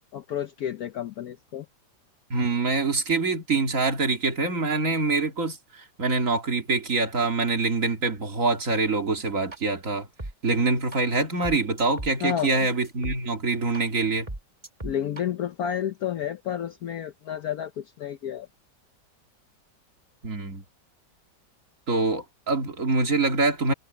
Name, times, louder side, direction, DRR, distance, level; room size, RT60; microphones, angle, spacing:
voice 1, 0.1-1.7 12.2-12.6 14.8-18.5, left 9 dB, 60° left, 1.1 m, -31 dB
voice 2, 2.3-10.1 10.4-14.3 20.2-20.6 21.9-23.7, right 3 dB, 45° right, 3.0 m, -25 dB
sound 1, 9.5-9.6 10.2-10.3 10.9-11.0 11.4-13.2 13.7-13.8 14.3-15.2, right 2 dB, 20° right, 2.7 m, -36 dB
omnidirectional pair, 2.0 m